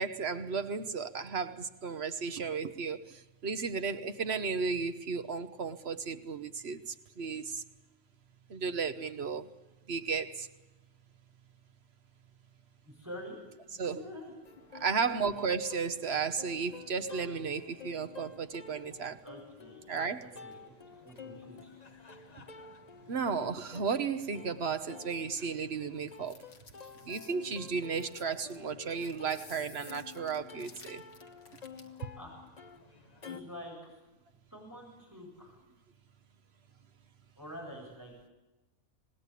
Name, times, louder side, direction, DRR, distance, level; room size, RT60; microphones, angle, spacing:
voice 1, 0.0-7.6 8.5-9.5 9.9-10.5 13.8-14.0 14.8-19.2 19.9-20.3 23.1-26.4 27.0-31.0, right 5 dB, 50° right, 1.2 m, -34 dB
voice 2, 12.8-13.4 13.7-14.3 14.7-15.1 19.2-19.8 20.2-20.6 21.0-21.7 32.2-32.4 33.2-33.9 34.5-35.6 37.4-38.3, equal, 10° right, 7.7 m, -47 dB
Plucked string instrument, 14.4-33.4, left 5 dB, 30° left, 1.1 m, -50 dB
sound 1, 26.1-32.0, left 4 dB, 55° left, 1.9 m, -55 dB
26.0 x 19.5 x 8.4 m
omnidirectional pair, 1.5 m